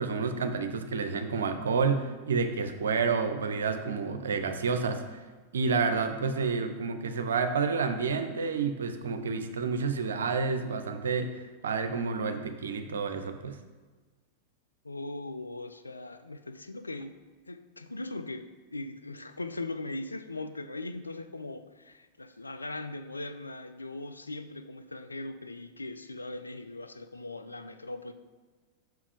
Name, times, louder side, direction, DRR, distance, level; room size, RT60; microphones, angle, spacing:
voice 1, 0.0-5.2 5.5-13.6, right 5 dB, 65° right, 8 dB, 0.5 m, -29 dB
voice 2, 14.8-17.2 17.5-28.1, left 2 dB, 80° left, 9 dB, 0.3 m, -39 dB
5.7 x 4.7 x 3.5 m, 1.3 s
figure-of-eight pair, 90°, 0 cm